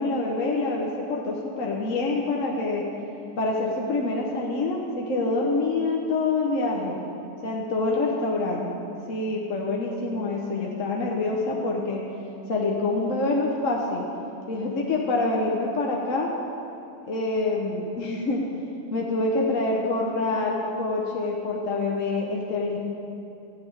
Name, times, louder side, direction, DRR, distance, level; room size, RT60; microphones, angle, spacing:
voice 1, 0.0-2.9 3.4-7.0 7.4-8.7 9.1-12.0 12.5-14.1 14.5-16.3 17.0-18.5 18.9-22.8, left 2 dB, 50° left, -2 dB, 1.3 m, -26 dB
13.5 x 6.1 x 8.6 m, 2.8 s
omnidirectional pair, 1.9 m